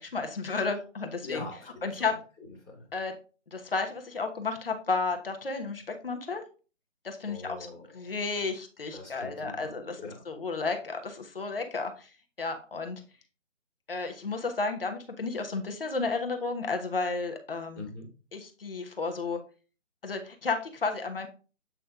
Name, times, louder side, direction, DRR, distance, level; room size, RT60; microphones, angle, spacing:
voice 1, 0.0-1.5 1.8-2.1 2.9-3.1 3.5-6.4 7.0-7.6 7.9-10.0 10.3-12.1 12.4-13.0 13.9-17.8 18.3-19.4 20.0-21.3, left 4 dB, 50° left, 5 dB, 1.1 m, -32 dB
voice 2, 1.2-2.9 7.3-8.1 8.9-10.2 17.7-18.1, left 3 dB, 5° right, -16 dB, 0.7 m, -43 dB
8.1 x 3.3 x 3.6 m, 0.35 s
figure-of-eight pair, 150°, 37 cm